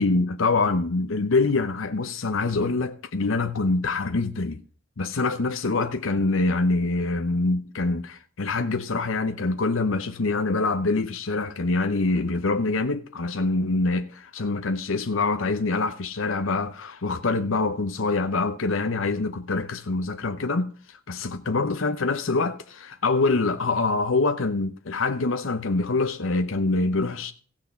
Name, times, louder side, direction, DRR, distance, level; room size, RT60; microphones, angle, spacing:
voice 1, 0.0-4.6 5.0-27.3, left 3 dB, 70° left, 0.7 m, -25 dB
15.0 x 6.1 x 6.9 m
head